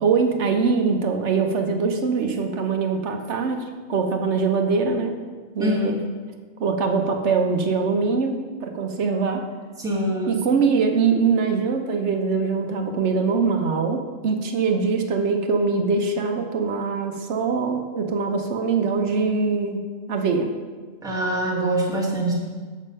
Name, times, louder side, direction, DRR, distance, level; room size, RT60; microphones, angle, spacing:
voice 1, 0.0-3.6 3.9-5.1 5.5-6.0 6.6-8.3 8.6-9.4 10.3-19.8 20.1-20.5, right 5 dB, 60° right, 5 dB, 1.1 m, -22 dB
voice 2, 9.8-10.4 21.0-22.4, right 1 dB, 5° right, -2 dB, 1.2 m, -24 dB
7.3 x 6.3 x 5.3 m, 1.4 s
omnidirectional pair, 1.4 m